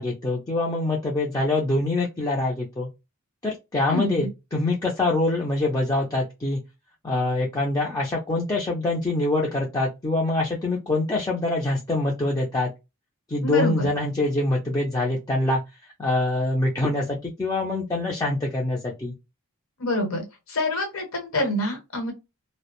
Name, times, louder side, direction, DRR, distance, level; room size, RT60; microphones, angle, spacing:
voice 1, 0.0-2.9 3.4-6.6 7.0-12.7 13.3-15.6 16.0-19.1, left 2 dB, 15° left, -3 dB, 0.4 m, -25 dB
voice 2, 3.9-4.3 13.4-13.9 19.8-20.2 20.5-22.1, left 1 dB, 70° left, 2 dB, 1.0 m, -26 dB
2.4 x 2.0 x 2.9 m, 0.24 s
head